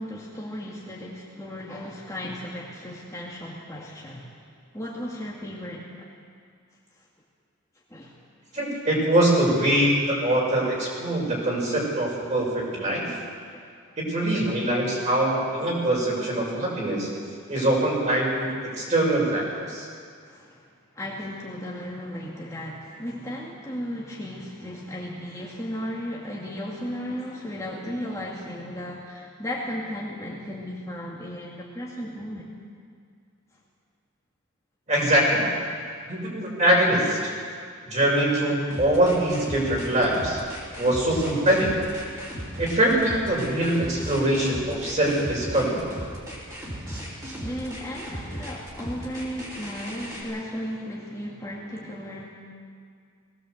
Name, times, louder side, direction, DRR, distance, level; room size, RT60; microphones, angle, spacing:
voice 1, 0.0-4.3 4.7-5.8 7.9-8.2 13.5-13.6 18.7-18.9 20.3-20.6 21.0-32.5 47.4-52.3, equal, 15° left, -4 dB, 2.1 m, -35 dB
voice 2, 8.5-13.1 14.0-17.1 17.5-18.5 18.8-19.9 34.9-35.5 36.0-37.2 37.9-40.4 40.8-41.8 42.6-45.9, right 1 dB, 35° right, -3 dB, 6.1 m, -23 dB
sound 1, 38.7-50.2, equal, 20° right, 4.9 m, -36 dB
20.0 x 17.0 x 7.9 m, 2.2 s
head